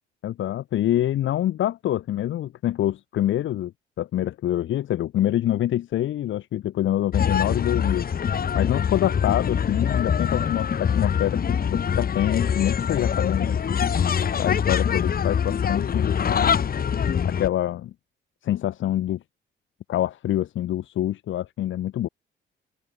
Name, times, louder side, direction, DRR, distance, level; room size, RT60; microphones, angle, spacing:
voice 1, 0.2-3.7 4.0-8.1 8.5-13.6 14.4-16.6 17.2-17.9 18.4-19.2 19.9-22.1, left 12 dB, 75° left, 3.6 m, -26 dB
sound 1, 7.1-17.5, left 7 dB, 50° left, 2.4 m, -24 dB
open air
cardioid pair, 90°, 20 cm